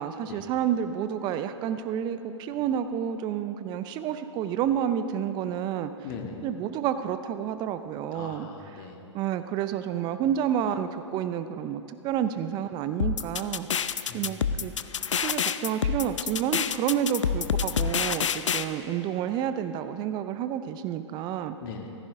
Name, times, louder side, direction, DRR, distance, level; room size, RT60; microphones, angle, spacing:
voice 1, 0.0-5.9 6.4-8.5 9.1-13.8 14.1-14.7 15.1-21.6, right 9 dB, 25° right, 11 dB, 0.5 m, -29 dB
voice 2, 6.0-6.4 8.1-9.0 14.1-14.5 21.6-21.9, left 5 dB, 45° left, 2 dB, 1.7 m, -40 dB
sound 1, 13.0-18.6, left 7 dB, 75° left, 0.5 m, -27 dB
15.5 x 14.5 x 3.7 m, 2.9 s
figure-of-eight pair, 110°, 16 cm